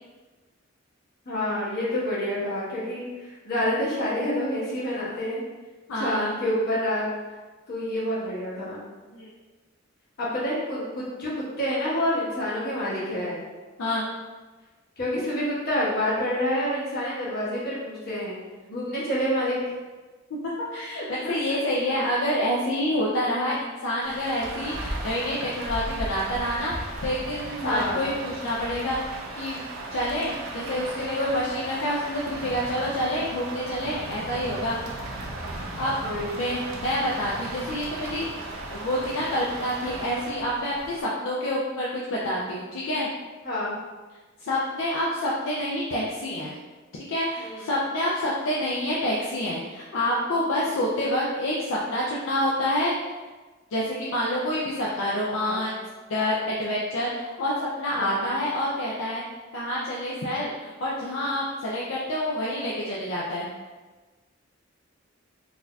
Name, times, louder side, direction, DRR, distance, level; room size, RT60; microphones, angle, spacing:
voice 1, 1.2-5.4 5.9-7.1 7.7-8.8 10.2-13.4 15.0-18.4 18.7-19.6 21.0-22.0 27.6-28.0 36.0-36.4 43.4-43.7 47.4-47.6 55.4-55.7 57.9-58.3, left 1 dB, 50° left, -8 dB, 1.2 m, -28 dB
voice 2, 5.9-6.4 9.1-9.3 13.8-14.0 20.7-29.0 29.4-34.8 35.5-36.0 36.3-43.1 44.4-46.6 47.1-52.9 53.7-55.8 56.1-59.2 59.5-63.5, left 1 dB, 70° left, -5 dB, 0.5 m, -28 dB
Rain, 24.0-41.0, right 2 dB, 80° right, 0.6 m, -36 dB
4.0 x 2.7 x 2.3 m, 1.3 s
head